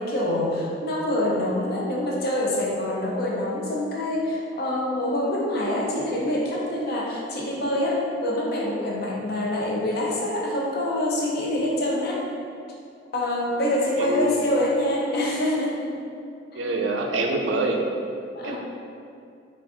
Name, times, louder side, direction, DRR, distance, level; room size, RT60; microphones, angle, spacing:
voice 1, 0.0-12.2 13.1-16.0 16.5-16.7 18.3-18.6, left 1 dB, 55° left, -3 dB, 0.7 m, -25 dB
voice 2, 14.0-14.4 16.5-17.8 18.4-18.6, right 2 dB, 85° right, 2 dB, 0.4 m, -25 dB
3.9 x 2.5 x 3.5 m, 2.4 s
head